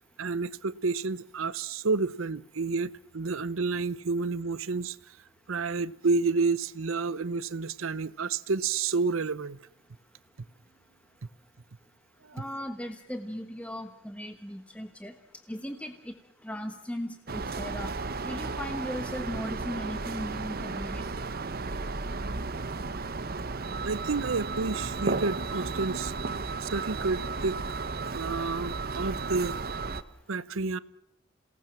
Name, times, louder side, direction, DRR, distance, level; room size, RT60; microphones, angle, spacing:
voice 1, 0.2-5.0 5.5-9.6 12.2-12.4 23.8-26.1 26.6-27.6 28.1-29.6 30.3-30.8, right 4 dB, 85° right, 18 dB, 0.8 m, -30 dB
voice 2, 12.3-15.1 15.5-16.1 16.4-17.9 18.2-21.0, equal, 5° left, 7 dB, 1.2 m, -37 dB
sound 1, 17.3-30.0, right 3 dB, 50° right, 1.1 m, -34 dB
28.0 x 18.5 x 7.5 m, 0.81 s
head